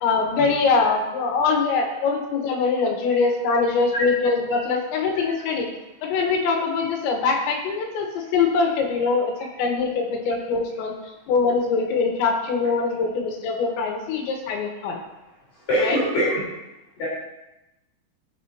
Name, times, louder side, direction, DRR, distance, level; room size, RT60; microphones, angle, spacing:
voice 1, 0.0-5.7 6.0-9.3 9.6-10.9 11.3-15.0 15.8-16.0, left 4 dB, 85° left, 1 dB, 3.7 m, -23 dB
voice 2, 15.7-16.4 17.0-17.1, equal, 50° left, -9 dB, 5.4 m, -23 dB
17.0 x 6.7 x 2.8 m, 0.96 s
omnidirectional pair, 5.1 m